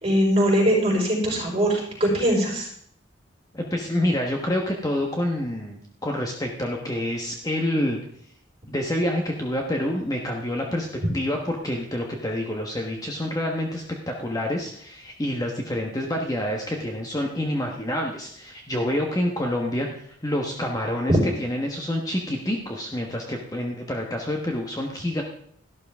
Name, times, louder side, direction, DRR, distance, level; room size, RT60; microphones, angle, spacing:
voice 1, 0.0-2.7, equal, 30° right, -2 dB, 5.2 m, -21 dB
voice 2, 3.5-8.0 8.7-10.9 11.1-25.2, left 1 dB, 20° left, 1 dB, 1.2 m, -27 dB
13.5 x 12.0 x 3.6 m, 0.65 s
head